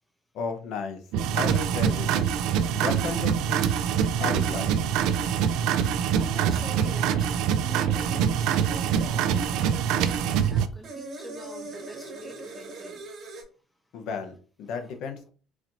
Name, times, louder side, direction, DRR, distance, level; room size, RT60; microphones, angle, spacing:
voice 1, 0.3-1.0 1.3-2.2 2.7-3.6 4.2-4.8 13.9-15.3, left 5 dB, 65° left, 5 dB, 0.8 m, -33 dB
sound 1, 1.1-10.7, right 8 dB, 75° right, 0.3 m, -25 dB
voice 2, 2.5-3.2 3.7-4.2 6.2-7.3 7.6-13.1, equal, ahead, 4 dB, 0.6 m, -44 dB
sound 2, 7.5-9.2 10.1-13.4, right 3 dB, 45° right, 1.3 m, -42 dB
4.1 x 2.6 x 2.9 m, 0.37 s
cardioid pair, 130°, 0 cm